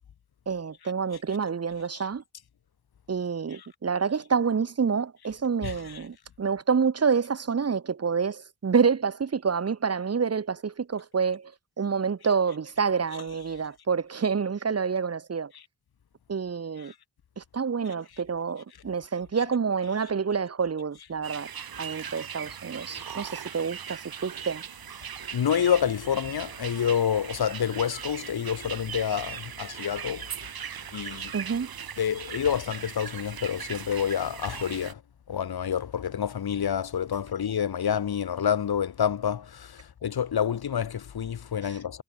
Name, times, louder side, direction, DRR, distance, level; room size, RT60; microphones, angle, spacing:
voice 1, 0.5-2.2 3.1-11.5 11.8-15.5 16.3-16.9 17.4-21.5 21.8-24.6 31.3-31.7, right 6 dB, 40° right, 1.4 m, -28 dB
voice 2, 5.6-6.0 25.3-30.2 30.9-31.3 32.0-35.0 35.3-39.7 40.0-42.0, left 8 dB, 90° left, 4.9 m, -28 dB
sound 1, 21.2-34.9, right 8 dB, 75° right, 2.9 m, -39 dB
wide cardioid pair, 115°, 36 cm